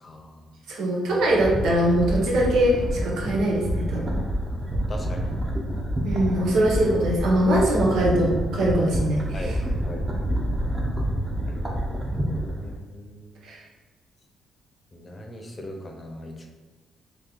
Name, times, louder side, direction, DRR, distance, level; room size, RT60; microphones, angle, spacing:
voice 1, 0.0-0.4 1.1-1.2 4.9-5.3 9.3-10.3 11.4-13.3 14.9-16.5, left 1 dB, 25° left, 1 dB, 0.8 m, -40 dB
voice 2, 0.7-4.2 6.0-9.6 13.4-13.6, right 1 dB, 80° right, -2 dB, 1.0 m, -22 dB
sound 1, 1.2-12.8, equal, 20° right, 0.9 m, -28 dB
3.1 x 3.0 x 4.0 m, 1.4 s
cardioid pair, 90°, 0 cm